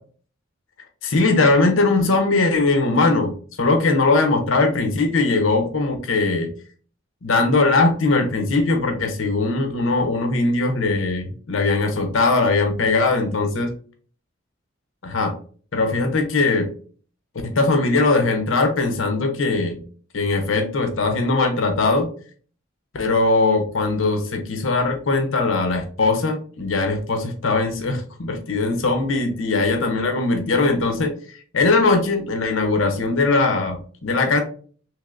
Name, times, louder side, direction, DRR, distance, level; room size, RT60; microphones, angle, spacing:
voice 1, 1.0-6.5 7.2-13.7 15.0-15.4 15.7-16.7 17.4-19.8 20.1-22.1 23.0-34.4, left 3 dB, 80° left, 5 dB, 0.6 m, -20 dB
3.3 x 2.9 x 2.4 m, 0.43 s
head